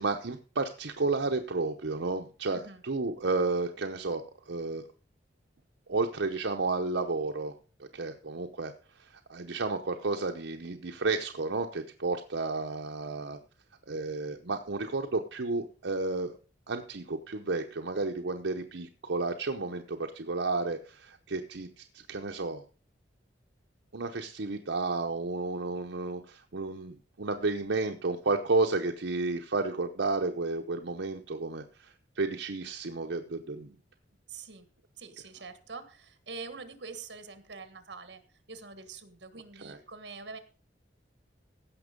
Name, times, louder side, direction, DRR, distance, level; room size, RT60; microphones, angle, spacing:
voice 1, 0.0-4.9 5.9-7.5 7.8-8.7 9.0-13.4 13.9-16.4 16.7-22.6 23.9-33.7 39.6-39.8, right 3 dB, 85° right, 4 dB, 0.9 m, -32 dB
voice 2, 34.3-34.7 35.0-38.2 38.5-40.4, right 4 dB, 70° right, 11 dB, 1.6 m, -45 dB
16.0 x 6.0 x 5.2 m, 0.37 s
head